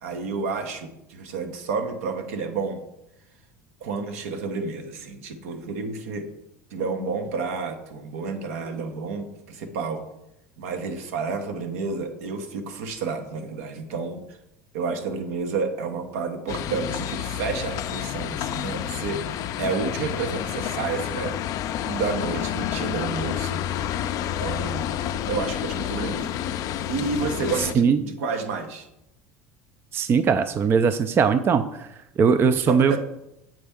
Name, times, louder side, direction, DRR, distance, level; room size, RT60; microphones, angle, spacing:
voice 1, 0.0-2.8 3.8-6.3 6.7-10.0 10.6-14.4 14.7-21.4 21.8-23.6 24.4-24.9 25.2-26.3 26.9-28.9 32.5-33.0, right 4 dB, 85° right, 6 dB, 0.9 m, -30 dB
sound 1, 16.5-27.7, left 11 dB, 50° left, 0.4 m, -29 dB
voice 2, 29.9-31.7 32.2-33.0, right 6 dB, 30° right, 11 dB, 0.3 m, -19 dB
7.5 x 4.3 x 3.5 m, 0.86 s
supercardioid pair, 105°, 8 cm